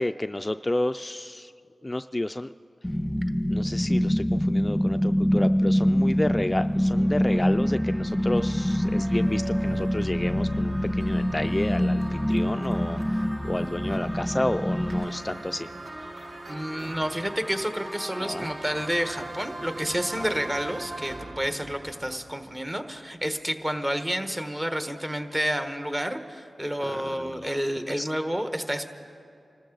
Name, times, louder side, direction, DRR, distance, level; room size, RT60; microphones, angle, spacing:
voice 1, 0.0-1.5 1.8-2.5 3.5-15.7 18.2-18.5 20.2-20.4 26.8-27.5 27.9-28.1, left 1 dB, 25° left, 10 dB, 0.3 m, -31 dB
sound 1, 2.8-15.0, equal, ahead, 1.4 m, -25 dB
sound 2, 6.1-23.0, right 1 dB, 45° right, 1.0 m, -41 dB
sound 3, 9.0-11.4 13.0-13.1 14.9-15.1, right 3 dB, 80° right, 0.7 m, -42 dB
voice 2, 16.5-28.9, equal, 20° right, 7 dB, 1.2 m, -30 dB
25.5 x 14.0 x 3.9 m, 2.5 s
cardioid pair, 45°, 0 cm